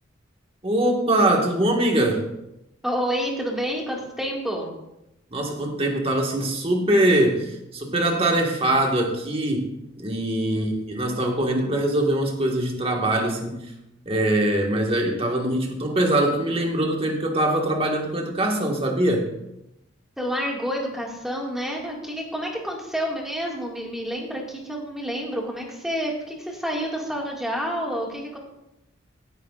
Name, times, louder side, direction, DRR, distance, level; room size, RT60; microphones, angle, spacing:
voice 1, 0.6-2.3 5.3-9.7 9.9-13.7 14.0-19.3, right 1 dB, 30° right, 1 dB, 1.7 m, -22 dB
voice 2, 2.8-4.7 10.5-10.8 20.2-28.4, equal, ahead, -2 dB, 2.0 m, -29 dB
16.0 x 9.3 x 2.5 m, 0.87 s
head